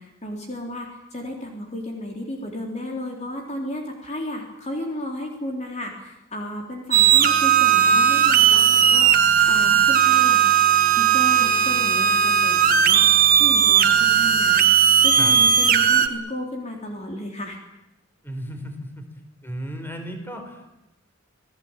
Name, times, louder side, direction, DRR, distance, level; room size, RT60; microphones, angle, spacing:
voice 1, 0.0-10.4 11.0-14.7 15.0-17.6, left 1 dB, 35° left, 1 dB, 3.6 m, -33 dB
sound 1, 6.9-16.1, right 8 dB, 45° right, 1.8 m, -17 dB
voice 2, 18.2-19.0 19.4-20.7, equal, 10° left, 5 dB, 4.5 m, -34 dB
27.5 x 18.5 x 8.9 m, 0.92 s
head